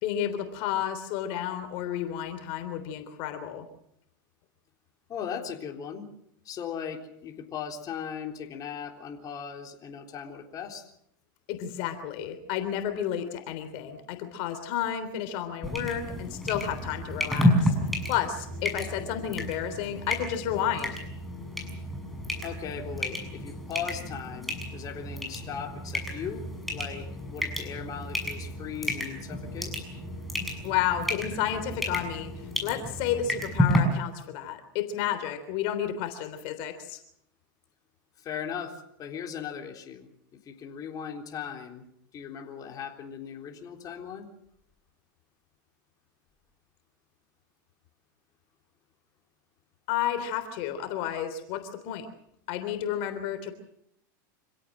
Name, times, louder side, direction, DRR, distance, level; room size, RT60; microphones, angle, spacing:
voice 1, 0.0-3.6 11.5-17.7 18.1-21.0 30.6-32.3 32.6-37.0 49.9-52.0 52.5-53.5, left 10 dB, 55° left, 8 dB, 3.4 m, -31 dB
voice 2, 5.1-6.1 6.5-10.9 22.4-29.7 38.2-40.1 40.4-41.8 42.1-44.3, left 7 dB, 35° left, 2 dB, 3.7 m, -38 dB
sound 1, 15.6-33.8, left 1 dB, ahead, 6.6 m, -31 dB
26.5 x 16.5 x 7.6 m, 0.75 s
supercardioid pair, 125°, 11 cm